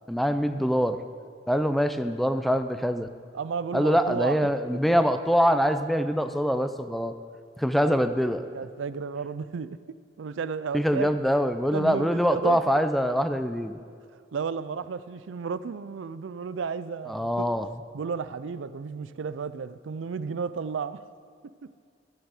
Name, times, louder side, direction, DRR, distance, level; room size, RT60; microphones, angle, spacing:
voice 1, 0.1-1.0 1.5-3.1 3.7-7.1 7.6-8.5 10.7-13.8 17.1-17.7, equal, ahead, 9 dB, 0.4 m, -24 dB
voice 2, 3.3-4.5 7.9-8.0 8.5-11.1 11.7-12.8 14.3-17.5 17.9-21.0 21.6-21.7, right 5 dB, 90° right, 14 dB, 0.4 m, -33 dB
13.0 x 9.1 x 4.9 m, 2.2 s
head